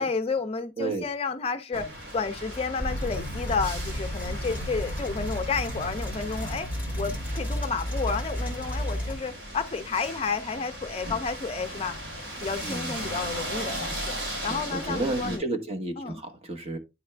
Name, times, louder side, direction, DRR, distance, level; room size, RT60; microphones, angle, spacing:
voice 1, 0.0-1.9 2.1-6.7 7.0-12.0 12.4-14.2 14.4-15.4 16.0-16.2, left 4 dB, 30° left, 0.4 m, -31 dB
sound 1, 1.7-15.4, equal, 75° right, 4.0 m, -37 dB
sound 2, 2.8-9.2, equal, 10° right, 2.0 m, -32 dB
voice 2, 12.6-13.0 14.5-16.8, right 2 dB, 30° right, 1.0 m, -32 dB
9.6 x 3.4 x 3.3 m
head